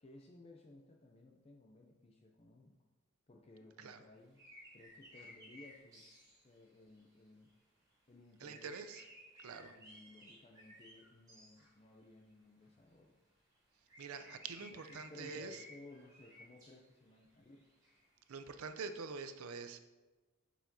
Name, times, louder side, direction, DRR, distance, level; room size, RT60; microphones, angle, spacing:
voice 1, 0.0-2.8 3.3-4.4 4.7-6.1 6.4-7.5 8.1-8.8 9.6-13.2 14.7-17.6, left 2 dB, 30° left, 1 dB, 0.4 m, -58 dB
sound 1, 4.2-7.5 7.9-8.0 8.4-12.0 12.6-12.7 13.5-13.6 13.9-18.5, equal, 15° right, 1.8 m, -58 dB
voice 2, 8.4-9.0 9.4-9.7 14.0-15.6 18.3-19.8, right 5 dB, 80° right, 9 dB, 0.5 m, -46 dB
7.1 x 5.7 x 2.7 m, 1.2 s
head